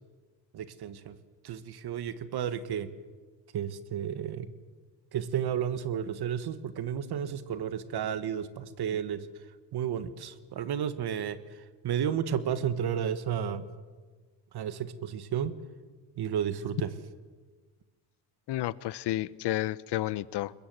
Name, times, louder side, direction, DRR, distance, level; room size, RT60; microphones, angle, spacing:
voice 1, 0.5-1.1 1.4-2.9 3.5-4.5 5.1-9.3 9.7-11.4 11.8-13.7 14.5-15.5 16.2-16.9, right 9 dB, 55° right, 13 dB, 1.6 m, -32 dB
voice 2, 18.5-20.5, left 15 dB, 60° left, 19 dB, 0.9 m, -31 dB
21.5 x 21.5 x 8.0 m, 1.4 s
cardioid pair, 95°, 46 cm